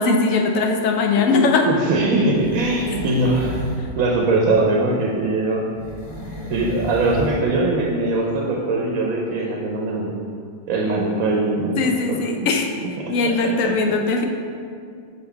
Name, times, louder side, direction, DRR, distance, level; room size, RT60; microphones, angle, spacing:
voice 1, 0.0-1.7 11.8-12.7 13.1-14.3, left 4 dB, 75° left, 3 dB, 0.9 m, -20 dB
voice 2, 1.7-3.6 4.0-5.7 6.5-10.1 10.7-11.8 12.1-12.5 13.0-13.1 13.4-13.7, right 2 dB, 80° right, -2 dB, 1.1 m, -21 dB
sound 1, 1.9-3.9 5.7-7.5 7.7-7.8, equal, 45° left, 1.5 m, -32 dB
5.7 x 3.8 x 4.4 m, 2.3 s
omnidirectional pair, 1.5 m